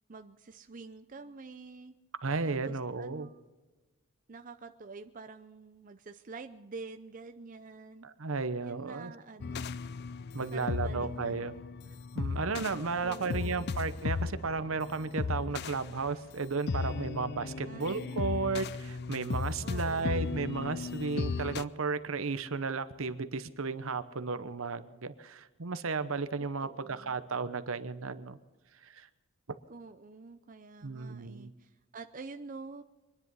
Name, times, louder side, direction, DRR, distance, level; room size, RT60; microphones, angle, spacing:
voice 1, 0.1-2.0 2.5-3.4 4.3-8.1 8.6-9.7 10.4-11.5 13.0-13.9 17.6-18.4 19.6-20.5 26.6-27.2 29.7-32.8, right 4 dB, 40° right, 7 dB, 0.6 m, -47 dB
voice 2, 2.2-3.3 8.0-9.1 10.3-11.5 12.1-28.4 28.8-29.1 30.8-31.5, right 4 dB, 70° right, 13 dB, 0.9 m, -34 dB
sound 1, 9.4-21.6, left 4 dB, 50° left, 0.4 m, -36 dB
24.5 x 10.5 x 5.5 m, 1.2 s
head